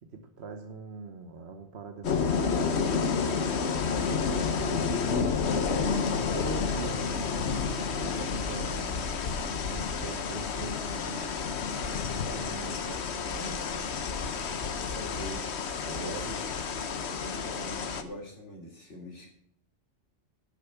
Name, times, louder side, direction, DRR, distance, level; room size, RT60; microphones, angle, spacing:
voice 1, 0.0-3.6 4.4-4.9 5.5-9.0 9.5-11.4 12.1-13.9 15.8-16.4, right 4 dB, 65° right, 5 dB, 1.2 m, -42 dB
sound 1, 2.0-18.0, left 5 dB, 70° left, 1.2 m, -30 dB
voice 2, 4.3-4.8 14.8-15.4 15.9-16.4 17.2-19.3, left 1 dB, 85° left, 0 dB, 3.4 m, -43 dB
11.5 x 6.6 x 5.8 m, 0.71 s
omnidirectional pair, 1.2 m